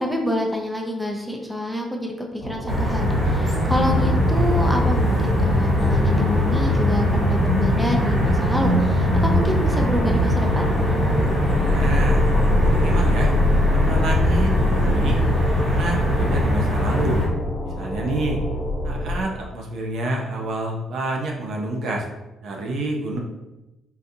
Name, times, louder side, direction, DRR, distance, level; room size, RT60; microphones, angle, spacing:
voice 1, 0.0-10.7, equal, 5° right, 1 dB, 0.5 m, -27 dB
sound 1, 2.4-19.2, left 1 dB, 60° left, 0.9 m, -26 dB
sound 2, 2.7-17.3, left 1 dB, 45° right, 1.3 m, -21 dB
voice 2, 11.7-12.3 12.6-13.3 13.7-15.2 15.6-17.2 17.6-18.4 18.8-22.1 22.4-23.2, right 2 dB, 75° right, 0 dB, 0.6 m, -28 dB
3.9 x 2.3 x 2.7 m, 0.99 s
cardioid pair, 90°, 0 cm